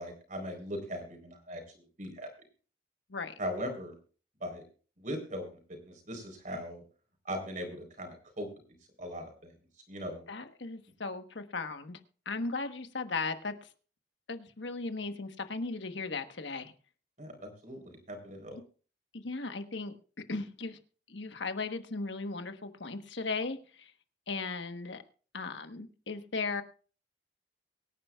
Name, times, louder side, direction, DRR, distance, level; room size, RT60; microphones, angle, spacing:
voice 1, 0.0-2.3 3.4-3.9 4.4-4.6 5.0-5.4 5.7-6.8 7.2-8.5 9.0-9.5 9.9-10.2 17.2-18.6, equal, 45° right, 4 dB, 4.0 m, -39 dB
voice 2, 10.3-12.0 12.2-13.7 14.3-16.7 18.5-18.6 19.1-19.9 20.3-20.8 21.1-23.9 24.3-25.0 25.3-26.6, left 3 dB, 85° left, 8 dB, 1.2 m, -37 dB
24.0 x 10.0 x 2.4 m, 0.39 s
head